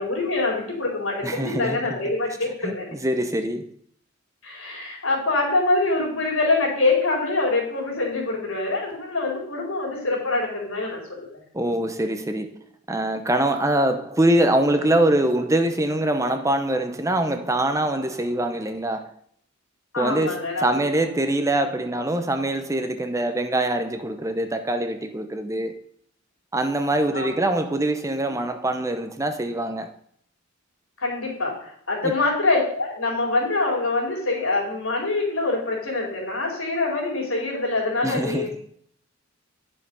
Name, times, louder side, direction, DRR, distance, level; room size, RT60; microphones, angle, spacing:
voice 1, 0.0-2.9 4.4-11.4 19.9-20.8 27.1-27.5 31.0-38.5, left 3 dB, 80° left, 4.5 m, -25 dB
voice 2, 1.2-2.0 2.6-3.6 11.5-12.5 12.9-19.1 20.0-25.8 26.5-29.9 32.0-32.1 38.0-38.6, right 1 dB, 15° right, 0.8 m, -24 dB
10.5 x 6.7 x 5.5 m
head